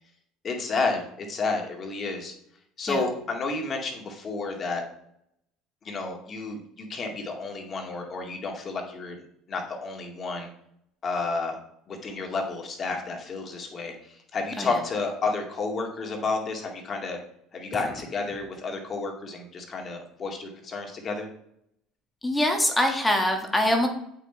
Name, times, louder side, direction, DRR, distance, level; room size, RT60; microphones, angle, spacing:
voice 1, 0.4-2.3 2.8-4.8 5.8-9.2 9.5-10.5 11.0-11.5 11.9-17.2 17.5-21.3, left 3 dB, 35° left, 2 dB, 2.1 m, -31 dB
voice 2, 22.2-23.9, left 1 dB, 10° left, 3 dB, 1.5 m, -23 dB
8.2 x 6.0 x 4.4 m, 0.73 s
supercardioid pair, 110°, 0 cm